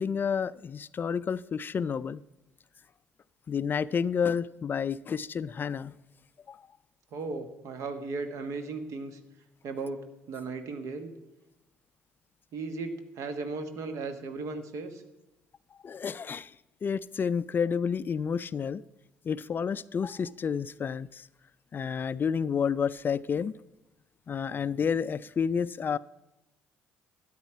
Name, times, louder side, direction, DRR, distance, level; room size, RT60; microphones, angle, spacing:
voice 1, 0.0-2.2 3.5-5.9 6.5-6.6 15.7-16.5 16.8-18.8 19.2-21.3 21.7-23.5 24.3-26.0, left 6 dB, 35° left, 0.3 m, -30 dB
voice 2, 7.1-9.2 9.6-11.1 12.5-15.0, right 3 dB, 60° right, 1.4 m, -36 dB
13.0 x 9.3 x 4.6 m
figure-of-eight pair, 50°, 6 cm